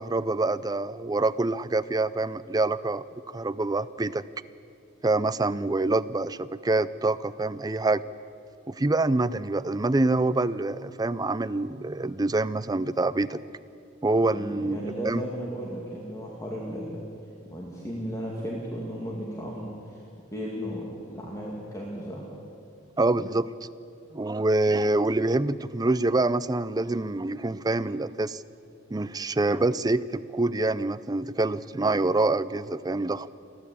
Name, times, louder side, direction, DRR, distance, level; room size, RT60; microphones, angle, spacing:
voice 1, 0.0-4.2 5.0-8.0 8.7-13.4 14.0-15.2 23.0-23.5 24.1-28.4 28.9-33.3, right 2 dB, 20° right, 15 dB, 0.5 m, -26 dB
voice 2, 14.2-17.0 17.5-20.0 20.3-22.3, equal, 15° left, -3 dB, 2.3 m, -35 dB
29.0 x 11.0 x 8.6 m, 2.5 s
head